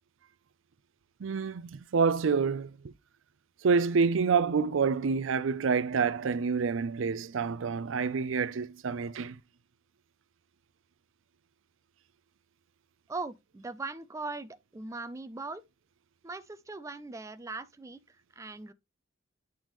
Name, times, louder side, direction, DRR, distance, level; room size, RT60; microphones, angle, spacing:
voice 1, 1.2-2.7 3.6-9.4, right 5 dB, 75° right, 0.5 m, -27 dB
voice 2, 13.1-15.6 16.2-18.7, right 3 dB, 15° right, 0.4 m, -40 dB
8.8 x 3.5 x 3.0 m
head